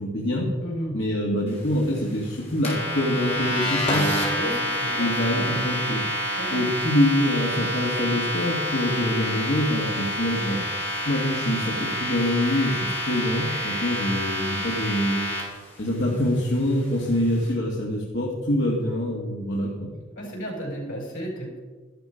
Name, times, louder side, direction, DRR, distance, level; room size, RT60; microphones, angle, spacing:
voice 1, 0.0-0.5 0.9-4.1 4.9-6.1 6.5-10.6 11.1-15.2 15.8-19.9, left 1 dB, 65° left, -3 dB, 1.9 m, -25 dB
voice 2, 0.6-0.9 4.3-5.7 6.4-6.7 20.1-21.6, equal, 85° left, 0 dB, 4.9 m, -34 dB
sound 1, 2.6-15.4, equal, 30° left, 4.2 m, -28 dB
13.5 x 11.5 x 5.1 m, 1.3 s
head